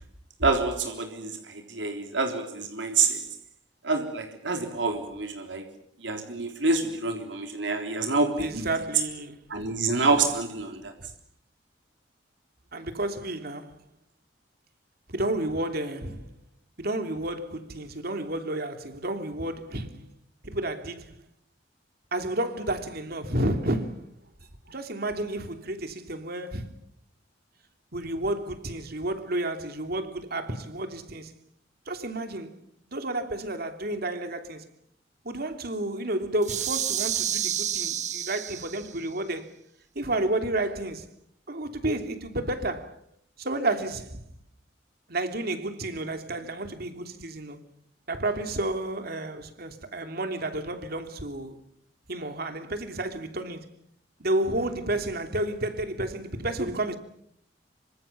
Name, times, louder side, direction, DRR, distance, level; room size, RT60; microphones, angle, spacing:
voice 1, 0.4-3.2 3.8-5.7 6.0-8.7 9.5-10.9, right 3 dB, 85° right, 3.6 m, -27 dB
voice 2, 8.4-9.5 12.7-13.7 15.1-16.3 16.8-20.1 20.4-21.2 22.1-24.1 24.7-26.7 27.9-31.3 31.9-32.6 32.9-34.6 35.2-39.5 39.9-41.1 41.5-43.0 43.4-44.3 45.1-47.6 48.1-51.6 52.1-53.7 54.2-57.0, right 1 dB, 55° right, 3.1 m, -31 dB
sound 1, 36.4-39.0, right 10 dB, 40° right, 1.2 m, -29 dB
26.5 x 25.0 x 7.2 m
head